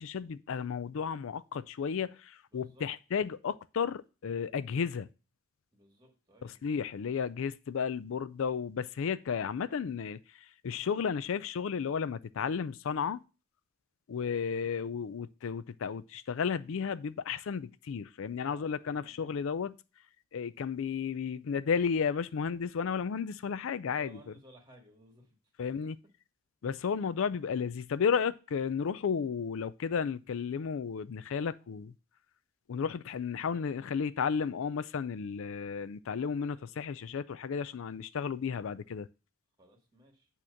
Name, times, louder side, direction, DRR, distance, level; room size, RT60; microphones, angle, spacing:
voice 1, 0.0-5.1 6.4-10.2 10.6-13.2 14.1-19.8 20.3-24.1 25.6-26.0 26.6-31.9 32.7-39.1, left 6 dB, 65° left, 0.4 m, -33 dB
voice 2, 2.5-2.9 5.7-6.6 18.4-19.5 23.9-25.7 33.4-34.0 39.6-40.3, right 1 dB, 20° right, 1.8 m, -59 dB
8.5 x 3.0 x 6.4 m
head